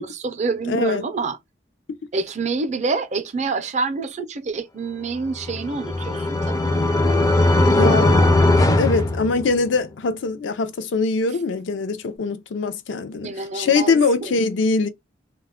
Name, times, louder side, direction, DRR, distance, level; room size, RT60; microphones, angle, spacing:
voice 1, 0.0-1.4 2.1-6.8 13.2-14.3, right 4 dB, 40° right, 0.5 m, -27 dB
voice 2, 0.7-1.1 7.7-8.3 8.8-14.9, left 3 dB, 80° left, 0.4 m, -22 dB
sound 1, 5.3-9.9, left 2 dB, 20° left, 0.4 m, -19 dB
2.2 x 2.1 x 3.5 m
head